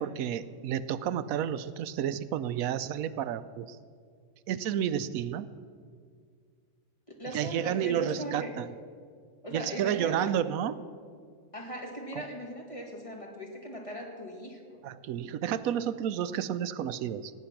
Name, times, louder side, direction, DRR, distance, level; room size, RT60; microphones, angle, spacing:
voice 1, 0.0-3.8 4.5-5.5 7.3-8.7 9.5-10.7 14.8-17.3, right 9 dB, 90° right, 14 dB, 1.0 m, -31 dB
voice 2, 7.2-8.6 9.4-10.3 11.5-14.8, equal, 25° left, 0 dB, 1.9 m, -39 dB
17.0 x 9.2 x 5.9 m, 2.1 s
omnidirectional pair, 1.4 m